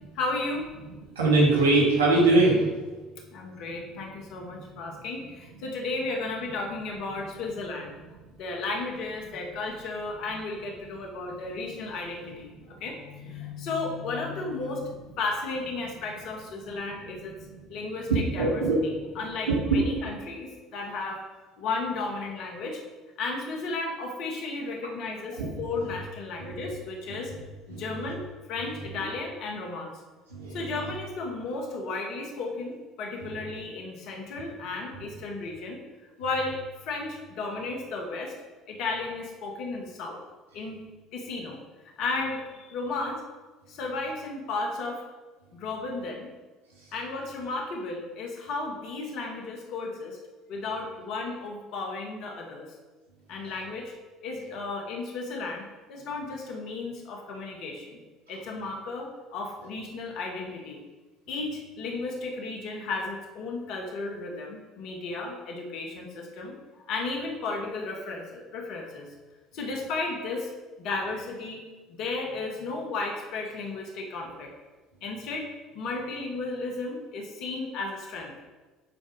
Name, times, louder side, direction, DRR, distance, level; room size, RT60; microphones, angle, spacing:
voice 1, 0.2-0.7 3.3-7.9 8.3-17.4 17.7-21.2 21.6-22.8 23.2-27.3 27.7-28.2 28.5-29.9 30.5-35.8 36.2-38.3 38.7-40.2 40.5-40.8 41.1-41.6 42.0-43.2 43.7-45.0 45.5-46.3 46.9-50.2 50.5-52.7 53.3-53.9 54.2-58.0 58.3-60.8 61.3-66.5 66.9-69.1 69.5-70.5 70.8-74.5 75.0-78.3, left 3 dB, 60° left, 1 dB, 1.8 m, -34 dB
voice 2, 1.2-2.7 18.4-18.8 19.5-19.8 25.4-25.5 26.4-26.5 27.7-27.8 30.3-30.6, right 2 dB, 85° right, -4 dB, 2.7 m, -21 dB
9.4 x 4.4 x 5.2 m, 1.3 s
hypercardioid pair, 65°, 0 cm